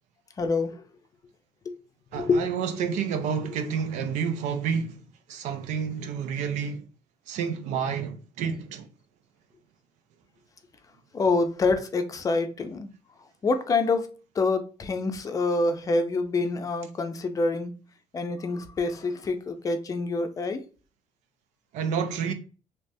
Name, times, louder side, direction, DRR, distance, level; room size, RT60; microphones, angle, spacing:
voice 1, 0.4-0.8 1.7-1.8 2.1-2.5 11.1-12.9 13.4-17.7 18.1-20.6, left 3 dB, 30° left, 0.5 m, -26 dB
voice 2, 2.1-5.0 5.3-6.9 7.3-8.9 21.7-22.3, right 7 dB, 85° right, 0.5 m, -29 dB
3.4 x 2.8 x 2.6 m
cardioid pair, 135°, 12 cm